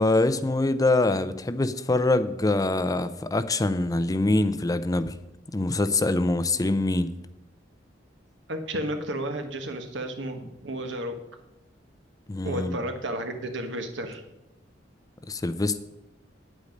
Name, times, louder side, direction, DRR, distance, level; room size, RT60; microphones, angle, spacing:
voice 1, 0.0-5.2 5.5-7.1 12.3-12.8 15.3-15.8, left 2 dB, 20° left, 12 dB, 0.5 m, -24 dB
voice 2, 8.5-11.2 12.4-14.2, right 1 dB, 80° right, 6 dB, 1.4 m, -32 dB
9.6 x 8.3 x 5.2 m, 0.91 s
head